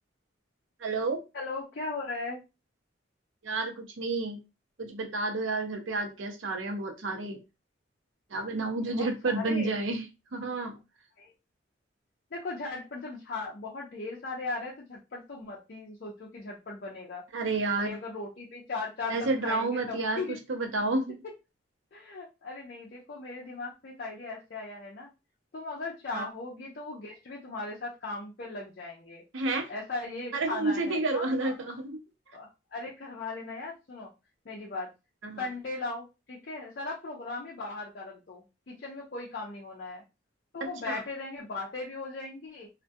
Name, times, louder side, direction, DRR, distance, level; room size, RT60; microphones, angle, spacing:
voice 1, 0.8-1.2 3.4-4.4 4.8-7.4 8.3-10.0 10.3-10.7 17.3-17.9 19.1-21.2 26.1-26.2 29.3-29.7 30.3-32.0 35.2-35.5 40.6-41.0, right 3 dB, 75° right, 4 dB, 0.6 m, -30 dB
voice 2, 1.3-2.4 8.8-9.7 11.2-11.3 12.3-17.2 17.8-20.4 21.9-25.1 25.5-29.2 29.7-31.5 32.3-34.1 34.5-34.9 35.4-40.0 40.5-42.7, left 3 dB, 50° left, -4 dB, 0.5 m, -38 dB
2.3 x 2.1 x 2.5 m, 0.26 s
head